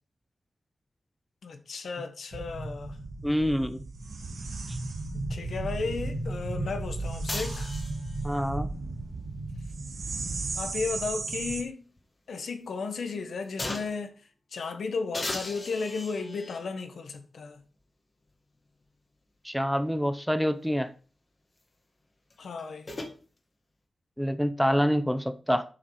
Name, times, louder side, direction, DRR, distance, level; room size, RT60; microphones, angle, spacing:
voice 1, 1.4-3.0 5.1-7.7 10.5-11.9 12.3-14.2 14.5-17.6 22.4-22.9, left 4 dB, 80° left, 1.4 m, -34 dB
sound 1, 2.3-11.6, right 2 dB, 85° right, 1.9 m, -35 dB
voice 2, 3.2-3.8 8.2-8.7 19.4-20.9 24.2-25.6, equal, ahead, 0.6 m, -26 dB
sound 2, 7.3-8.3 10.0-11.6 12.0-12.1 13.6-14.1 15.1-16.7 17.6-17.7 22.3-23.2, left 2 dB, 25° left, 1.6 m, -38 dB
7.5 x 6.6 x 4.9 m
wide cardioid pair, 155°, 0 cm